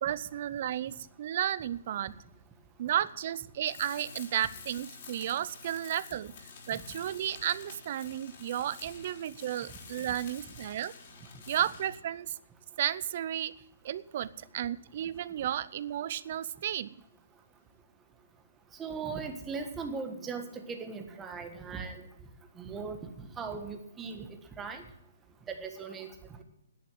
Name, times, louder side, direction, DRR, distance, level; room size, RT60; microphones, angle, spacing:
voice 1, 0.0-2.1 2.8-6.3 6.7-10.9 11.5-12.4 12.8-13.5 13.8-17.0, right 11 dB, 45° right, 18 dB, 0.6 m, -33 dB
Tools, 3.6-12.0, left 5 dB, 45° left, 3.8 m, -49 dB
voice 2, 18.8-22.0 22.6-24.3 24.6-24.8 25.5-26.1, right 5 dB, 15° right, 6 dB, 1.4 m, -38 dB
10.5 x 8.8 x 10.0 m, 0.77 s
hypercardioid pair, 155°, 0 cm